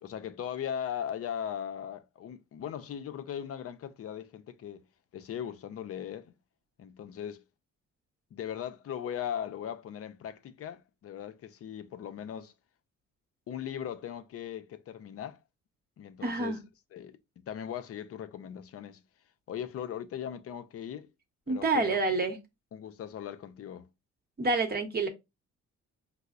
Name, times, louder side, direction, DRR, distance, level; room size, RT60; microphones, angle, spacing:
voice 1, 0.0-4.8 5.1-6.3 6.8-7.4 8.3-12.5 13.5-15.4 16.0-16.6 16.9-19.0 19.5-21.1 21.5-22.0 22.7-23.9, left 9 dB, 50° left, 0.5 m, -39 dB
voice 2, 16.2-16.6 21.5-22.4 24.4-25.1, right 3 dB, 30° right, 0.9 m, -28 dB
5.4 x 2.0 x 2.4 m
cardioid pair, 90°, 30 cm